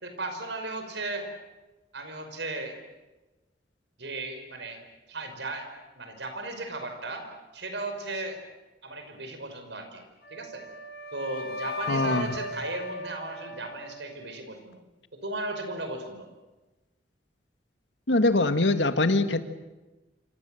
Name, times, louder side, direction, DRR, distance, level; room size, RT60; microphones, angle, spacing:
voice 1, 0.0-1.3 1.9-2.8 4.0-4.8 5.1-5.7 6.0-7.3 7.5-8.4 8.8-10.0 10.3-10.6 11.1-14.8 15.1-16.3, right 2 dB, 75° right, 6 dB, 5.6 m, -36 dB
Wind instrument woodwind instrument, 10.2-14.3, left 1 dB, 65° left, 6.8 m, -37 dB
voice 2, 11.9-12.3 18.1-19.4, left 2 dB, 85° left, 9 dB, 1.7 m, -23 dB
27.5 x 26.5 x 7.8 m, 1.1 s
head